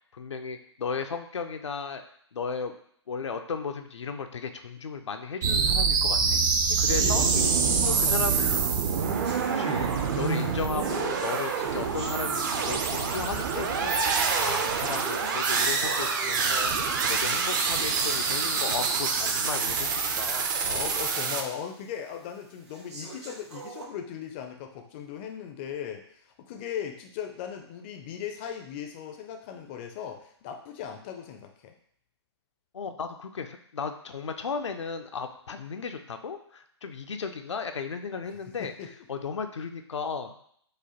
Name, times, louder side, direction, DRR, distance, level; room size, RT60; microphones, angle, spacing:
voice 1, 0.1-2.0 2.3-2.7 3.1-6.4 6.8-7.2 8.1-8.5 9.5-14.0 14.4-16.7 17.1-20.6 32.7-38.7 39.1-40.3, left 5 dB, 85° left, 6 dB, 0.5 m, -35 dB
sound 1, 5.4-21.4, right 5 dB, 45° right, 0.5 m, -26 dB
voice 2, 6.6-9.3 20.6-31.8 38.6-38.9, left 8 dB, 25° left, 5 dB, 0.4 m, -38 dB
sound 2, 7.8-13.0 13.8-13.9 14.7-20.0 20.4-20.5 21.0-21.1 21.8-21.9 22.7-23.8, right 3 dB, 75° right, 1.1 m, -43 dB
4.8 x 2.1 x 2.8 m, 0.65 s
hypercardioid pair, 140°, 15 cm